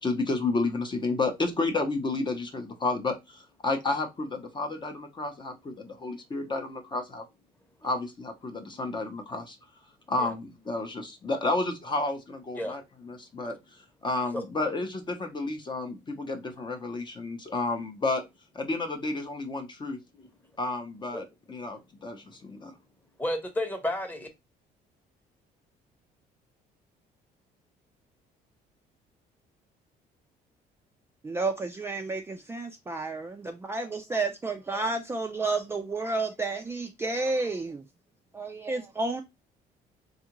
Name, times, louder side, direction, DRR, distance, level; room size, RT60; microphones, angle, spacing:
voice 1, 0.0-7.2 7.8-9.6 10.1-13.5 14.0-18.2 18.5-20.0 20.6-22.7, left 3 dB, 25° left, 0.7 m, -31 dB
voice 2, 23.2-24.3, left 1 dB, 10° left, 1.0 m, -32 dB
voice 3, 31.2-37.8 38.3-39.2, right 3 dB, 15° right, 0.4 m, -31 dB
3.5 x 2.4 x 2.9 m
cardioid pair, 110°, 17 cm